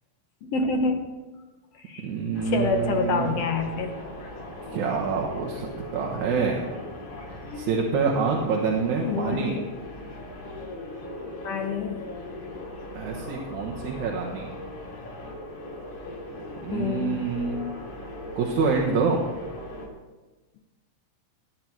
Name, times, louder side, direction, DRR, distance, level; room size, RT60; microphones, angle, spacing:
voice 1, 0.4-1.0 1.9-2.0 2.5-3.9 9.0-9.6 11.4-12.0 16.7-17.2, left 4 dB, 60° left, 4 dB, 2.1 m, -27 dB
voice 2, 2.0-3.5 4.0-4.1 4.7-6.6 7.3-9.6 12.9-14.5 16.6-17.6 18.4-19.2, right 5 dB, 80° right, -1 dB, 2.8 m, -27 dB
sound 1, 2.3-19.9, left 1 dB, 85° left, 4.7 m, -39 dB
18.0 x 9.8 x 4.7 m, 1.2 s
omnidirectional pair, 3.3 m